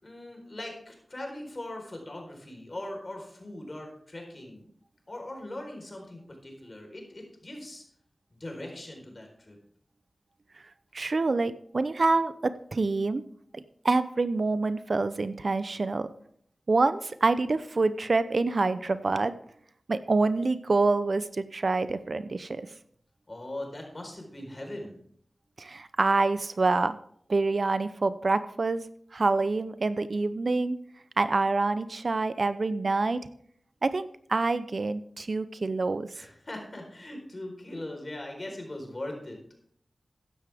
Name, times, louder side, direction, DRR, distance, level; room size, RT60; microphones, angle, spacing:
voice 1, 0.0-4.7 5.1-7.8 8.3-9.6 23.3-25.0 36.1-39.4, left 1 dB, 40° left, 2 dB, 4.3 m, -40 dB
voice 2, 10.9-13.2 13.5-16.1 16.7-19.3 19.9-22.7 25.6-27.0 27.3-28.9 29.1-30.8 31.2-33.2 33.8-36.1, right 3 dB, 60° right, 13 dB, 0.6 m, -26 dB
14.5 x 10.5 x 3.5 m, 0.63 s
wide cardioid pair, 70°, 0 cm